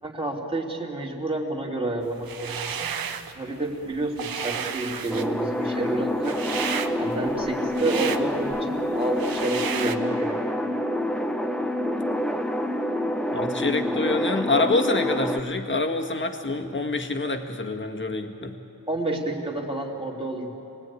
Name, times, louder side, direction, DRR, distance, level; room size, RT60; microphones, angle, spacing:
voice 1, 0.0-2.9 3.3-6.4 7.0-10.6 18.9-20.5, right 2 dB, 15° right, -1 dB, 3.0 m, -30 dB
sound 1, 2.2-3.3 3.7-10.0, right 7 dB, 75° right, 1.1 m, -33 dB
sound 2, 5.1-15.4, equal, ahead, 0.9 m, -27 dB
voice 2, 13.3-18.6, left 3 dB, 35° left, 3 dB, 1.8 m, -26 dB
26.5 x 19.0 x 9.7 m, 2.9 s
wide cardioid pair, 140°, 35 cm